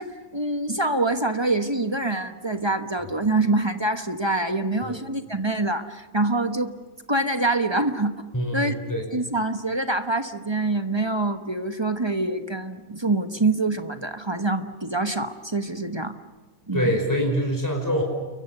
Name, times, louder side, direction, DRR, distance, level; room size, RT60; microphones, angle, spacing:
voice 1, 0.0-6.7 7.1-8.2 8.5-8.7 9.1-16.1 16.7-17.0, right 2 dB, 20° right, 8 dB, 1.0 m, -25 dB
voice 2, 8.3-9.1 16.7-18.0, equal, 10° left, 1 dB, 5.4 m, -24 dB
29.5 x 23.5 x 6.8 m, 1.3 s
omnidirectional pair, 1.7 m